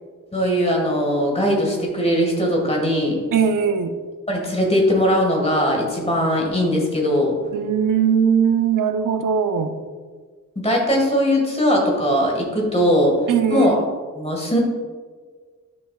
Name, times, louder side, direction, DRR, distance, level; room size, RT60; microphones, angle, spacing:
voice 1, 0.3-3.2 4.3-7.4 10.6-13.2 13.5-13.7 14.2-14.6, equal, 20° left, -1 dB, 1.8 m, -20 dB
voice 2, 3.3-3.9 7.5-9.7 13.3-13.7, right 7 dB, 85° right, 8 dB, 0.7 m, -19 dB
11.0 x 5.7 x 2.4 m, 1.6 s
wide cardioid pair, 115°, 31 cm